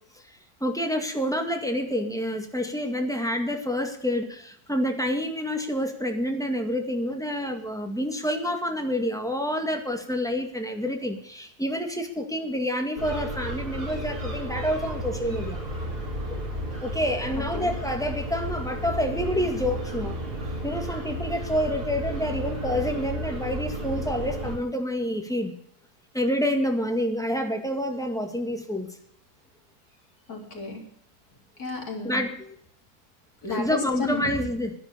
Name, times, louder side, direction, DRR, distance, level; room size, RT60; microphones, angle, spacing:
voice 1, 0.6-15.6 16.3-16.5 16.8-20.2 20.6-25.5 26.1-28.9 32.0-32.5 33.4-34.7, equal, ahead, 3 dB, 1.9 m, -28 dB
sound 1, 13.0-24.6, right 1 dB, 90° right, 4.4 m, -33 dB
voice 2, 17.3-17.7 30.3-30.8 31.6-32.2 33.4-34.4, left 2 dB, 75° left, 0 dB, 3.9 m, -32 dB
11.0 x 11.0 x 6.9 m, 0.66 s
omnidirectional pair, 1.6 m